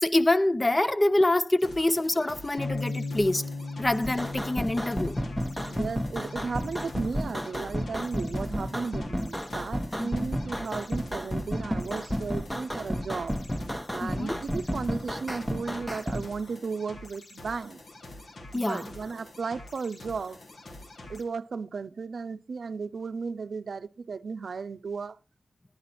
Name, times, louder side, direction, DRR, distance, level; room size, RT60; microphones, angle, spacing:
voice 1, 0.0-3.5 3.8-5.2 10.0-10.3 14.0-14.4 18.5-18.9, left 1 dB, 25° left, 0.6 m, -25 dB
sound 1, 1.6-21.2, left 1 dB, 70° left, 1.4 m, -47 dB
sound 2, 2.6-8.8, left 3 dB, 55° left, 1.3 m, -38 dB
sound 3, 4.0-16.2, equal, 5° left, 0.9 m, -32 dB
voice 2, 5.6-13.4 13.9-17.8 18.5-20.4 21.1-25.2, right 5 dB, 75° right, 0.5 m, -35 dB
11.0 x 9.7 x 4.2 m
wide cardioid pair, 80°, 0 cm